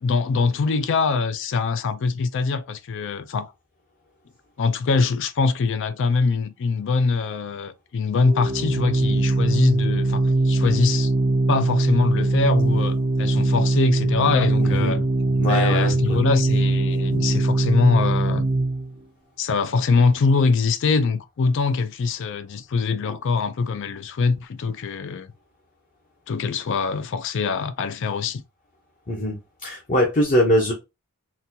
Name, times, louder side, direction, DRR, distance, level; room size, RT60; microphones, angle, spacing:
voice 1, 0.0-3.5 4.6-11.1 11.5-15.1 15.4-18.5 19.4-25.3 26.3-28.4, left 4 dB, 55° left, 0.4 m, -23 dB
Organ, 8.2-19.0, right 2 dB, 25° right, 0.4 m, -21 dB
voice 2, 14.6-15.0 15.4-16.2 29.1-30.7, equal, 35° left, 0.8 m, -22 dB
3.9 x 2.3 x 2.7 m
head